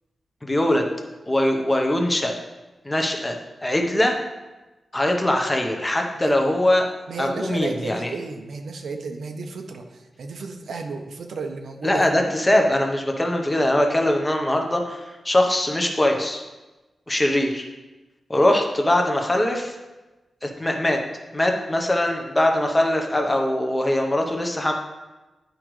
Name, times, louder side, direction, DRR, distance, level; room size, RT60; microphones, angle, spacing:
voice 1, 0.4-0.9 1.3-2.3 2.8-3.4 3.6-4.2 4.9-6.9 7.2-8.1 11.8-16.4 17.1-17.7 18.3-19.7 20.4-21.0 21.3-24.7, left 1 dB, 15° left, 2 dB, 0.8 m, -21 dB
voice 2, 7.1-12.2, right 4 dB, 80° right, 4 dB, 0.7 m, -33 dB
10.5 x 4.9 x 3.1 m, 1.1 s
wide cardioid pair, 155°, 0 cm